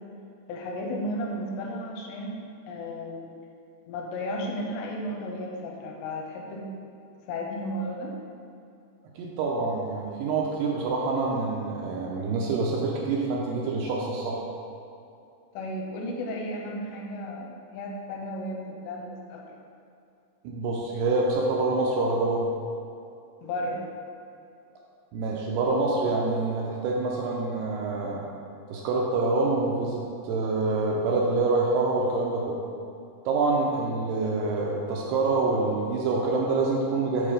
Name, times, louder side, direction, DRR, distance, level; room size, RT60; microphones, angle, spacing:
voice 1, 0.5-3.3 3.9-6.7 7.3-8.2 15.5-19.6 23.4-23.8, left 1 dB, 85° left, -1 dB, 2.9 m, -34 dB
voice 2, 9.2-14.4 20.4-22.5 25.1-28.2 28.7-32.6 33.3-37.3, right 3 dB, 80° right, -2 dB, 2.5 m, -26 dB
7.6 x 4.3 x 4.9 m, 2.6 s
omnidirectional pair, 5.2 m